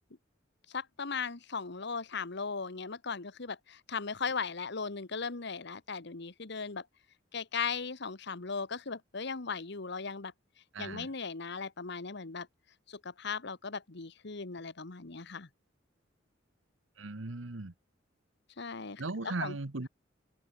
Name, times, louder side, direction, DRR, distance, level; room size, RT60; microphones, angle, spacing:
voice 1, 0.7-6.9 7.3-10.3 10.8-12.5 12.9-15.5 18.6-19.6, left 5 dB, 60° left, 1.3 m, -38 dB
voice 2, 10.7-11.1 17.0-17.7 19.0-19.9, right 3 dB, 80° right, 1.3 m, -37 dB
head